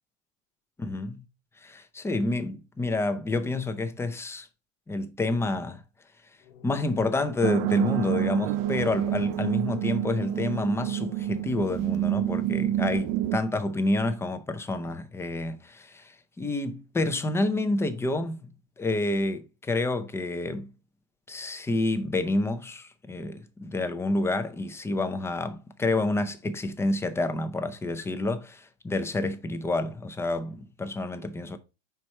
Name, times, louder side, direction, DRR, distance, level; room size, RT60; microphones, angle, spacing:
voice 1, 0.8-1.2 1.6-4.5 4.9-5.8 6.6-18.4 18.8-20.7 21.3-31.6, left 2 dB, 5° left, 0.5 m, -29 dB
sound 1, 6.4-12.6, left 7 dB, 80° left, 1.1 m, -47 dB
sound 2, 7.4-13.4, right 13 dB, 55° right, 0.5 m, -28 dB
5.3 x 4.7 x 4.3 m
supercardioid pair, 125°, 37 cm